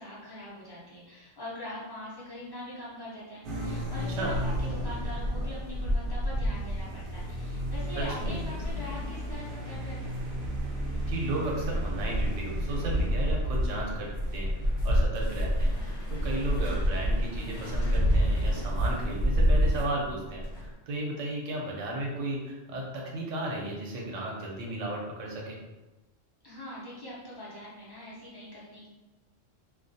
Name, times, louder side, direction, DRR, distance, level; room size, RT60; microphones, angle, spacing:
voice 1, 0.0-10.1 26.4-28.9, left 1 dB, 30° left, -7 dB, 0.5 m, -42 dB
sound 1, 3.4-15.0, equal, 55° right, 0.6 m, -37 dB
sound 2, 3.6-20.7, equal, 65° left, 0.9 m, -29 dB
voice 2, 8.0-8.4 11.1-25.6, right 1 dB, 75° right, -2 dB, 1.0 m, -34 dB
2.3 x 2.2 x 2.6 m, 1.1 s
omnidirectional pair, 1.3 m